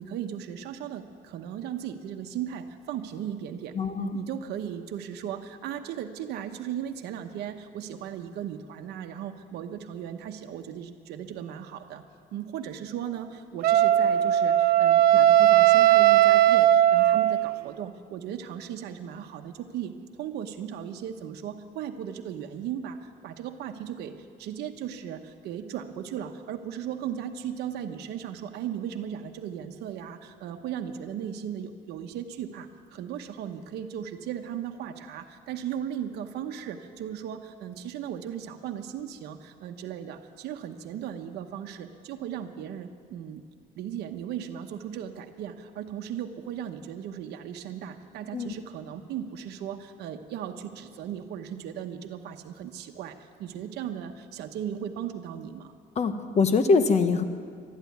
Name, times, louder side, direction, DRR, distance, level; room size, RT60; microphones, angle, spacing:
voice 1, 0.0-12.0 12.3-43.4 43.8-55.7, right 9 dB, 75° right, 5 dB, 1.0 m, -37 dB
voice 2, 3.7-4.2 48.3-48.5 56.0-57.2, left 4 dB, 40° left, 9 dB, 1.1 m, -23 dB
Wind instrument woodwind instrument, 13.6-17.6, right 12 dB, 60° right, 0.5 m, -18 dB
12.0 x 11.5 x 9.4 m, 2.1 s
cardioid pair, 110°, 17 cm